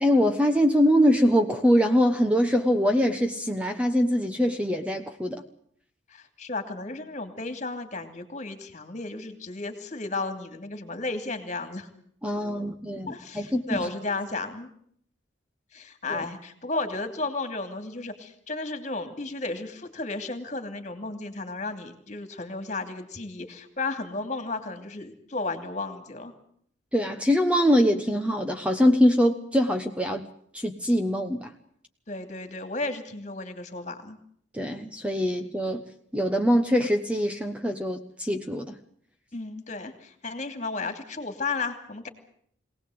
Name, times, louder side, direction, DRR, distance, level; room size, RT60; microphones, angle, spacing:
voice 1, 0.0-5.4 12.2-13.9 16.1-16.2 26.9-30.3 30.5-31.5 34.5-35.8 36.1-38.7, equal, 5° right, 5 dB, 1.1 m, -23 dB
voice 2, 6.1-11.9 13.1-14.7 15.7-26.3 32.1-34.2 39.3-42.1, left 3 dB, 40° left, 8 dB, 2.7 m, -33 dB
23.5 x 18.5 x 7.9 m, 0.63 s
head